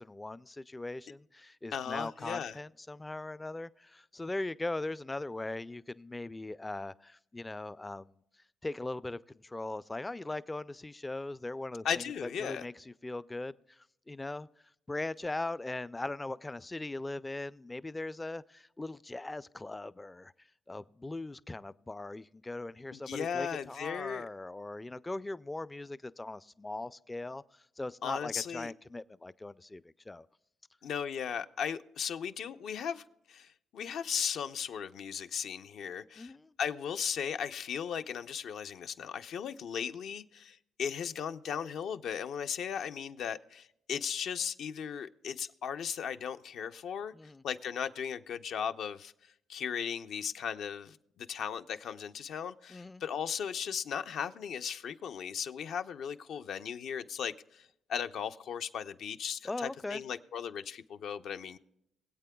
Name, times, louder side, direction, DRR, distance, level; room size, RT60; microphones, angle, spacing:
voice 1, 0.0-8.2 8.6-13.8 14.1-14.5 14.9-20.3 20.7-27.4 27.8-30.3 36.2-36.5 47.1-47.4 52.7-53.0 59.4-60.0, left 2 dB, 15° left, 0.3 m, -40 dB
voice 2, 1.7-2.6 11.8-12.7 22.9-24.3 28.0-28.7 30.8-47.1 47.4-61.6, left 7 dB, 70° left, 0.6 m, -37 dB
22.5 x 8.3 x 2.3 m
cardioid pair, 90°, 0 cm